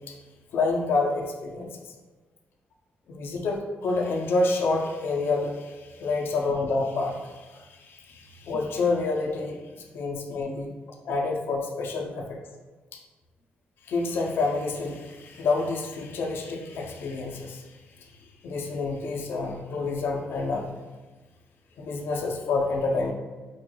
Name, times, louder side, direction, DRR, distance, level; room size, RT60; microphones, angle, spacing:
voice 1, 0.5-1.8 3.1-10.7 11.0-12.4 13.9-17.6 18.4-20.8 21.8-23.1, left 3 dB, 70° left, 0 dB, 0.5 m, -28 dB
4.5 x 2.2 x 3.0 m, 1.3 s
wide cardioid pair, 150°, 4 cm